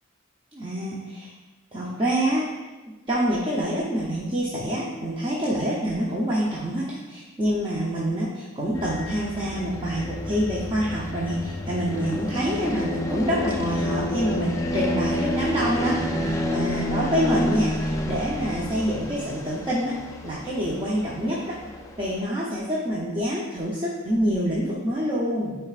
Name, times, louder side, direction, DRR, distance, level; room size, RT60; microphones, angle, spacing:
voice 1, 0.5-1.3 1.7-2.4 3.1-19.9 20.2-21.6 22.0-25.6, equal, 25° right, -6 dB, 0.7 m, -26 dB
sound 1, 8.7-22.2, left 1 dB, 15° left, 0.4 m, -29 dB
9.0 x 4.5 x 2.5 m, 1.2 s
head